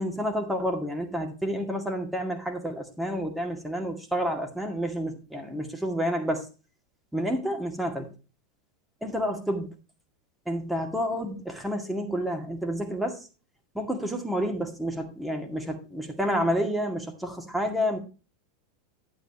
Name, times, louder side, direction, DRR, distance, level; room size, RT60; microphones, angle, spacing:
voice 1, 0.0-6.5 7.1-8.1 9.0-9.7 10.5-13.2 13.7-18.0, equal, 5° right, 3 dB, 2.1 m, -29 dB
11.5 x 9.1 x 2.9 m, 0.32 s
figure-of-eight pair, 85°, 0 cm